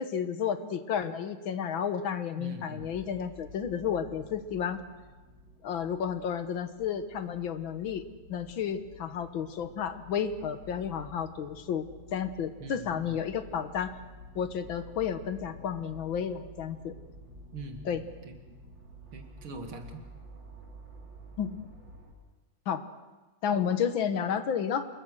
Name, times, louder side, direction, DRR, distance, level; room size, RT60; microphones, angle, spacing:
voice 1, 0.0-4.8 5.6-8.0 8.3-13.9 14.4-16.9 17.9-18.0 21.4-21.6 22.7-22.8 23.4-24.8, left 8 dB, 75° left, 10 dB, 2.0 m, -32 dB
voice 2, 2.4-2.9 12.6-13.2 17.5-18.4 19.1-20.0, right 2 dB, 85° right, 5 dB, 3.1 m, -43 dB
sound 1, 2.7-22.1, equal, 65° right, 4.4 m, -51 dB
26.5 x 22.0 x 6.3 m, 1.2 s
omnidirectional pair, 2.2 m